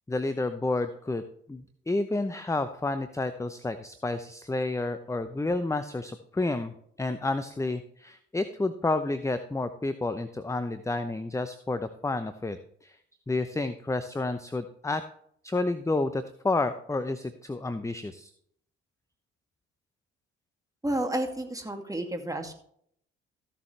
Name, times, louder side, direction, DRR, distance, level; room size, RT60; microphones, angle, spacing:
voice 1, 0.1-1.2 1.5-13.0 13.3-15.0 15.4-18.3, left 2 dB, 10° left, 10 dB, 0.8 m, -30 dB
voice 2, 20.8-22.5, right 1 dB, 10° right, 4 dB, 2.3 m, -31 dB
15.0 x 7.2 x 3.3 m, 0.66 s
hypercardioid pair, 55°, 31 cm